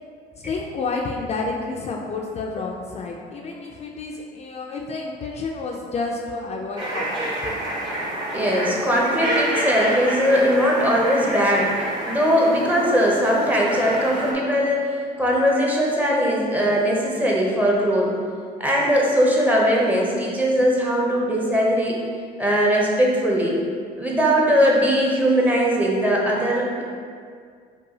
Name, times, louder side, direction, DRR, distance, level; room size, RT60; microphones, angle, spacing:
voice 1, 0.4-7.3, left 3 dB, 40° left, -1 dB, 0.4 m, -30 dB
sound 1, 6.8-14.3, right 1 dB, 30° right, 1.3 m, -28 dB
voice 2, 8.3-18.1 18.6-22.0 22.4-23.6 24.0-26.7, equal, 10° right, -3 dB, 0.7 m, -20 dB
5.4 x 2.3 x 2.8 m, 2.1 s
cardioid pair, 110°, 17 cm